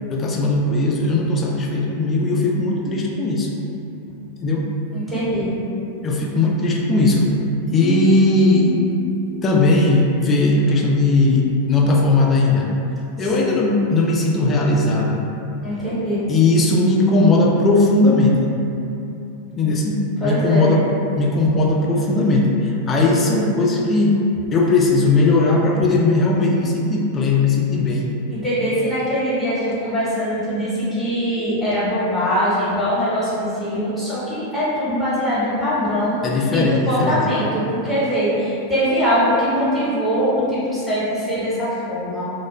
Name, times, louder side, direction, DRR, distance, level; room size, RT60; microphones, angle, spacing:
voice 1, 0.0-3.5 4.4-4.7 6.0-7.3 7.7-8.8 9.4-12.7 13.2-15.2 16.3-18.5 19.5-20.9 21.1-22.5 22.9-24.2 24.5-28.1 36.2-37.2 39.6-39.8, left 2 dB, 25° left, -2 dB, 0.3 m, -18 dB
voice 2, 4.9-5.5 13.2-13.3 15.6-16.3 20.2-20.8 28.3-42.2, equal, 5° left, -12 dB, 0.9 m, -22 dB
2.2 x 2.1 x 3.1 m, 2.8 s
figure-of-eight pair, 90°, 0 cm